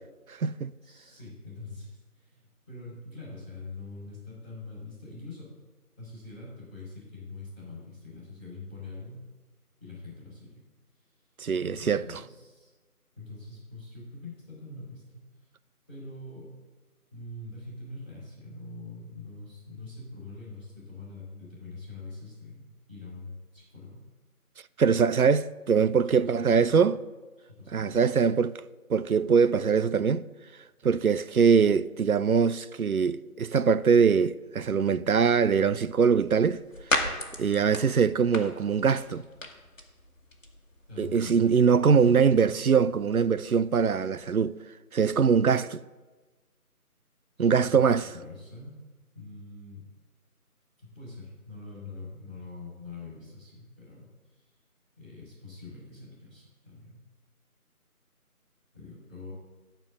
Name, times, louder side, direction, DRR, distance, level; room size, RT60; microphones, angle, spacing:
voice 1, 0.3-0.7 11.4-12.2 24.8-27.0 27.7-28.5 28.9-30.3 30.8-36.6 37.1-39.3 41.0-44.6 44.9-45.8 47.4-48.0, right 6 dB, 70° right, 0.5 m, -23 dB
voice 2, 0.8-5.5 6.0-9.3 9.8-10.6 11.0-11.2 11.6-12.7 13.1-15.2 15.9-16.5 17.1-24.0 25.9-26.9 27.4-28.3 40.9-41.5 41.9-42.6 47.4-47.9 48.1-48.7 49.1-49.9 50.8-54.5 54.9-57.0 58.7-59.3, left 3 dB, 10° right, 3.5 m, -44 dB
sound 1, 35.7-44.3, left 1 dB, 55° left, 1.5 m, -38 dB
12.0 x 4.5 x 7.3 m
figure-of-eight pair, 175°, 45 cm